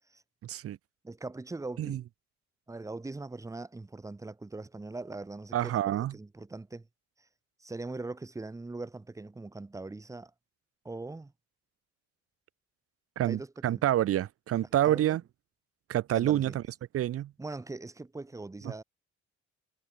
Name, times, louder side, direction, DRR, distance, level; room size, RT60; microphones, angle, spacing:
voice 1, 0.4-0.8 1.8-2.0 5.5-6.1 13.2-15.2 15.9-16.6 16.9-17.3 18.6-18.7, right 12 dB, 50° right, 0.5 m, -28 dB
voice 2, 1.0-2.0 2.7-6.9 7.6-10.3 10.8-11.3 13.2-13.8 14.9-15.2 16.1-16.6 17.4-18.8, right 3 dB, 10° right, 0.7 m, -41 dB
cardioid pair, 90°, 30 cm